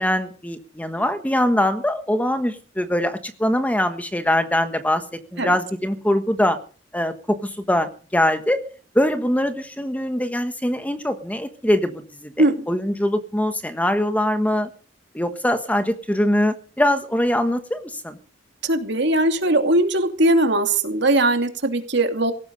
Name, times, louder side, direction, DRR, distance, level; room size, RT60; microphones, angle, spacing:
voice 1, 0.0-5.0 5.3-6.6 6.9-8.6 8.9-14.7 15.1-18.2, left 1 dB, 10° left, 9 dB, 1.3 m, -22 dB
voice 2, 18.6-22.3, right 1 dB, 65° right, 6 dB, 2.8 m, -20 dB
18.0 x 15.0 x 5.3 m, 0.41 s
head